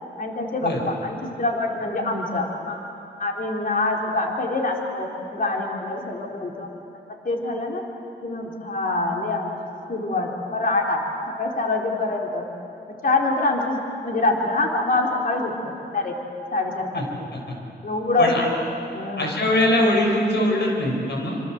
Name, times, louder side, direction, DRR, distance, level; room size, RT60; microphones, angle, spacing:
voice 1, 0.2-2.9 3.2-6.7 7.2-7.8 8.2-9.5 9.9-11.0 11.4-12.4 13.0-16.1 16.5-17.3 17.8-18.3 18.9-19.3, left 2 dB, 50° left, 0 dB, 3.7 m, -25 dB
voice 2, 19.2-21.4, left 1 dB, 75° left, 0 dB, 6.6 m, -22 dB
27.0 x 26.5 x 8.0 m, 2.9 s
cardioid pair, 80°, 18 cm